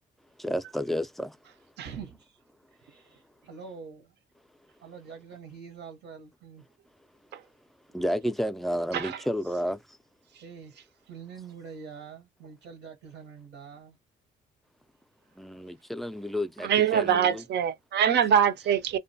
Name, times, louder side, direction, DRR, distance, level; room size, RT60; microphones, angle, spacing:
voice 1, 0.4-1.4 7.9-9.8 15.4-17.4, equal, ahead, 0.3 m, -31 dB
voice 2, 1.8-2.4 2.8-4.1 4.8-6.6 10.4-14.0, right 6 dB, 85° right, 0.8 m, -45 dB
voice 3, 8.9-9.2 10.3-10.4 16.6-19.0, right 8 dB, 60° right, 0.5 m, -24 dB
2.5 x 2.2 x 2.6 m
cardioid pair, 90°, 20 cm